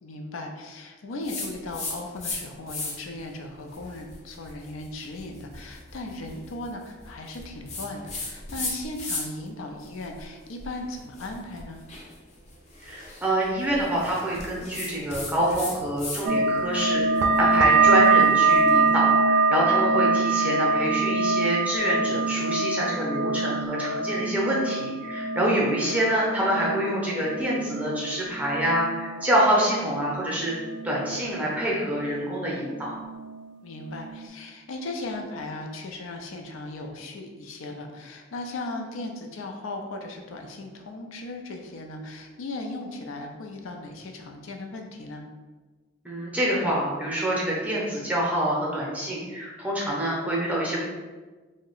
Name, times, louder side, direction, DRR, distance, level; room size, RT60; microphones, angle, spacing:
voice 1, 0.0-11.8 33.6-45.2, left 2 dB, 85° left, 3 dB, 0.4 m, -37 dB
sound 1, 1.2-2.4 2.7-3.2 3.7-9.5 9.8-16.2 16.5-18.7, left 3 dB, 35° left, 0.5 m, -37 dB
voice 2, 12.8-30.5 30.8-32.9 46.0-50.8, right 1 dB, 5° right, -5 dB, 0.6 m, -26 dB
sound 2, 16.3-31.4 31.7-32.5 32.8-33.5 33.9-34.3, right 4 dB, 60° right, 0.3 m, -24 dB
2.8 x 2.1 x 3.8 m, 1.3 s
head